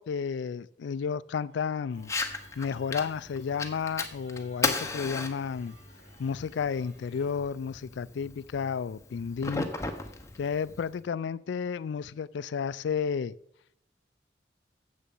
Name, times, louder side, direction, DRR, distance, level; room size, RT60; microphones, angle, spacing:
voice 1, 0.0-2.1 2.6-5.8 6.2-9.7 10.4-13.3, left 6 dB, 75° left, 0.3 m, -32 dB
sound 1, 1.5-7.3, right 1 dB, 75° right, 3.9 m, -59 dB
Fire, 2.0-11.0, left 3 dB, 15° left, 0.8 m, -36 dB
7.5 x 6.8 x 7.6 m
head